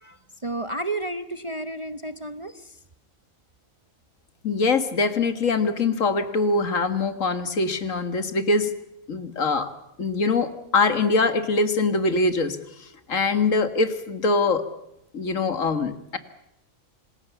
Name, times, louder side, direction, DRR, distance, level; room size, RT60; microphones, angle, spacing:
voice 1, 0.0-2.7, right 2 dB, 25° right, 10 dB, 0.8 m, -32 dB
voice 2, 4.4-8.7 9.1-9.7 10.0-12.6 13.1-14.6 15.1-16.2, left 3 dB, 70° left, 10 dB, 2.0 m, -23 dB
27.0 x 20.5 x 7.1 m, 0.86 s
omnidirectional pair, 1.4 m